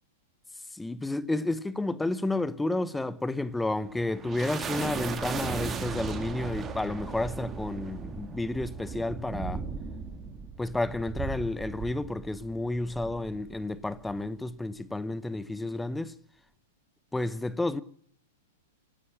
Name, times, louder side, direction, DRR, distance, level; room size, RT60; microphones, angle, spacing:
voice 1, 0.7-9.6 10.6-16.1 17.1-17.8, left 2 dB, 5° left, 1.1 m, -31 dB
sound 1, 3.5-14.2, right 5 dB, 20° right, 2.5 m, -37 dB
25.5 x 15.5 x 8.9 m
figure-of-eight pair, 100°, 0 cm